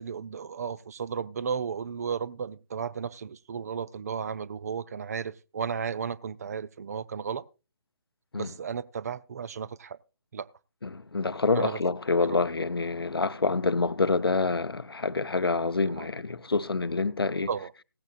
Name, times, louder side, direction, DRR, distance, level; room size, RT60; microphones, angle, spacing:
voice 1, 0.0-7.4 8.3-10.0 10.3-10.5 11.5-11.8 12.3-12.4 16.0-16.1 17.5-17.7, right 6 dB, 40° right, 0.5 m, -34 dB
voice 2, 10.8-17.5, left 3 dB, 75° left, 0.7 m, -27 dB
16.0 x 14.5 x 2.4 m
figure-of-eight pair, 140°, 13 cm